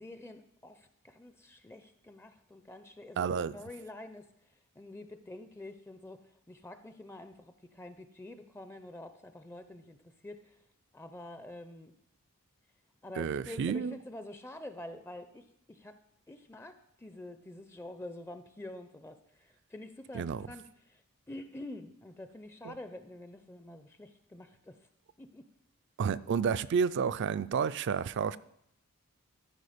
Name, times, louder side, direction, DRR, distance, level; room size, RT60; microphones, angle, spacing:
voice 1, 0.0-4.3 4.8-10.6 10.9-11.9 13.0-16.0 16.3-21.0 21.3-24.8 25.2-25.5, left 1 dB, 10° left, 0.4 m, -47 dB
voice 2, 3.2-3.6 13.2-14.0 20.1-20.5 22.6-22.7 26.0-28.4, right 6 dB, 55° right, 0.3 m, -30 dB
13.5 x 4.9 x 5.0 m
head